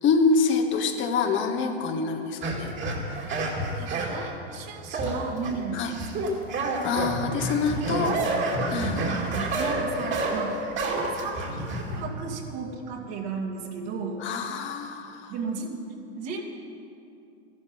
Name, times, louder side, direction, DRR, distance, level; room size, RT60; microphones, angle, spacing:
voice 1, 0.0-2.7 5.7-5.9 6.8-8.2 8.7-9.1 14.2-15.3, left 4 dB, 35° left, 4 dB, 1.2 m, -26 dB
sound 1, 2.4-4.2 4.9-5.6 5.9-12.0, right 2 dB, 35° right, 2.5 m, -28 dB
voice 2, 3.7-6.3 7.8-8.2 8.7-9.0 9.5-10.7 11.1-14.2 15.3-15.8 16.2-16.4, right 4 dB, 50° right, -1 dB, 2.4 m, -35 dB
14.0 x 12.0 x 5.4 m, 2.6 s
hypercardioid pair, 100°, 33 cm